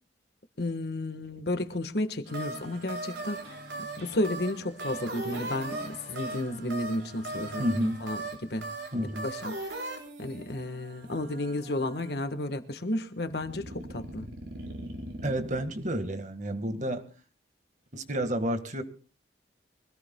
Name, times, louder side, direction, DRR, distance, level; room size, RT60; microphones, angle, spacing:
voice 1, 0.6-3.6 4.0-8.7 9.2-9.6 10.2-14.3 16.8-16.9, left 1 dB, 65° left, 1.4 m, -32 dB
sound 1, 2.3-12.2 13.3-15.6, right 2 dB, 85° right, 4.6 m, -39 dB
voice 2, 7.6-8.0 8.9-9.3 15.2-17.1 17.9-18.8, equal, 45° right, 1.7 m, -30 dB
24.5 x 17.5 x 2.3 m
head